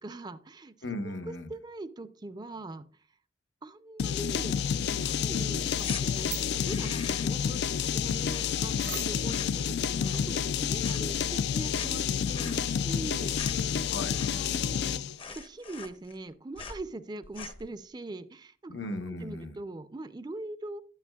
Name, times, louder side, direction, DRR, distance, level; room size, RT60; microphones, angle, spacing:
voice 1, 0.0-0.7 1.3-2.8 3.6-4.6 4.9-13.8 14.3-15.0 15.3-18.8 19.1-20.8, right 2 dB, 25° right, 12 dB, 0.4 m, -42 dB
voice 2, 0.8-1.5 13.8-14.2 18.7-19.6, left 2 dB, 85° left, 7 dB, 1.0 m, -37 dB
sound 1, 4.0-15.2, left 8 dB, 65° left, 0.3 m, -29 dB
sound 2, 5.7-6.7 8.8-9.4, right 11 dB, 55° right, 0.7 m, -42 dB
sound 3, 5.8-6.0 6.5-7.4 7.7-8.9 9.1-9.6 9.9-10.6 10.8-14.6 14.9-15.0 15.2-16.3 16.6-16.8 17.2-17.7, left 5 dB, 30° left, 0.7 m, -44 dB
11.0 x 9.1 x 2.3 m, 0.41 s
head